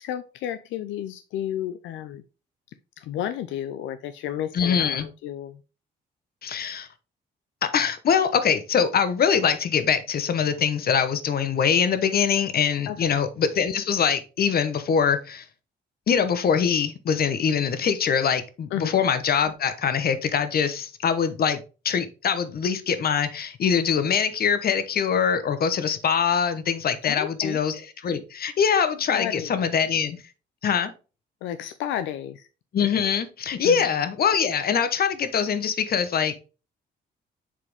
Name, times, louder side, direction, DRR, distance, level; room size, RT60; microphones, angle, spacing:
voice 1, 0.0-2.2 3.0-5.6 12.9-13.1 18.7-19.0 27.0-27.6 29.1-29.5 31.4-32.5 33.6-33.9, left 11 dB, 90° left, 0.5 m, -32 dB
voice 2, 4.5-5.1 6.4-6.9 7.6-15.4 16.1-30.2 30.6-30.9 32.7-36.3, left 7 dB, 55° left, 1.0 m, -23 dB
7.4 x 4.3 x 3.4 m
cardioid pair, 85°, 19 cm